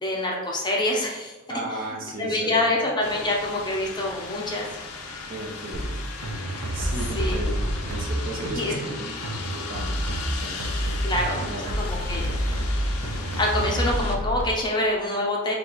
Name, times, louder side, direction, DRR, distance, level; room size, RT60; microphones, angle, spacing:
voice 1, 0.0-1.3 2.2-4.7 7.1-7.4 8.5-8.7 11.0-12.6 13.4-15.6, left 1 dB, 20° left, -2 dB, 0.6 m, -26 dB
voice 2, 1.5-2.7 5.3-6.0 6.7-7.6 7.9-11.1 11.3-11.7, right 2 dB, 40° right, -1 dB, 0.8 m, -35 dB
sound 1, 3.0-14.2, left 4 dB, 90° left, 0.6 m, -36 dB
sound 2, 5.7-14.5, equal, 80° right, 0.6 m, -28 dB
4.7 x 2.3 x 4.0 m, 1.2 s
head